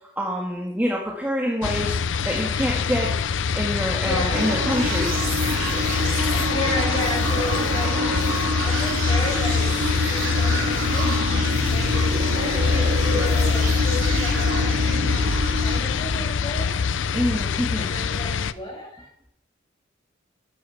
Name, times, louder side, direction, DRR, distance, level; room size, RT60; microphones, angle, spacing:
voice 1, 0.2-2.0 2.3-3.1 3.5-5.2 14.1-14.2 17.1-17.9, equal, 10° right, -2 dB, 1.8 m, -26 dB
sound 1, 1.6-18.5, left 5 dB, 65° left, 0.5 m, -24 dB
voice 2, 4.0-4.5 6.5-8.3 8.6-9.7 10.0-11.1 11.6-14.8 15.6-16.7 17.7-19.1, left 1 dB, 25° left, -4 dB, 7.1 m, -32 dB
sound 2, 4.3-15.8, right 1 dB, 90° right, 3.4 m, -27 dB
12.5 x 10.0 x 5.8 m, 0.73 s
head